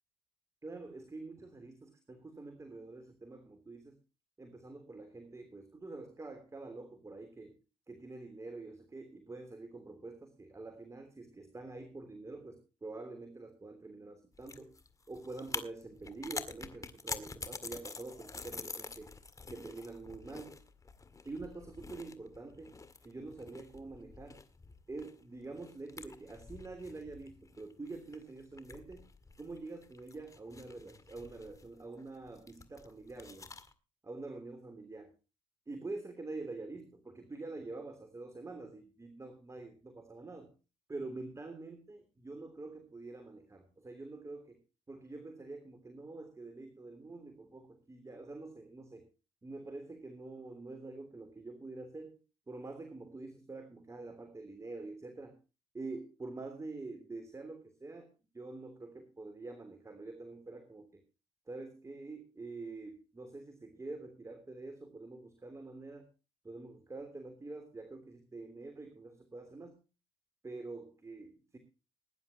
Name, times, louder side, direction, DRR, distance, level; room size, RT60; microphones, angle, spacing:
voice 1, 0.6-4.0 4.4-7.6 7.9-14.7 15.1-19.1 19.5-20.6 21.2-22.8 23.0-24.4 24.9-29.1 29.4-33.5 34.0-35.1 35.7-40.5 40.9-44.6 44.9-49.1 49.4-52.2 52.5-55.4 55.7-61.0 61.5-66.1 66.4-69.8 70.4-71.6, right 3 dB, 25° right, 7 dB, 3.2 m, -46 dB
sound 1, 14.3-33.7, left 4 dB, 25° left, 2.0 m, -47 dB
21.5 x 11.0 x 2.9 m, 0.31 s
supercardioid pair, 70°, 12 cm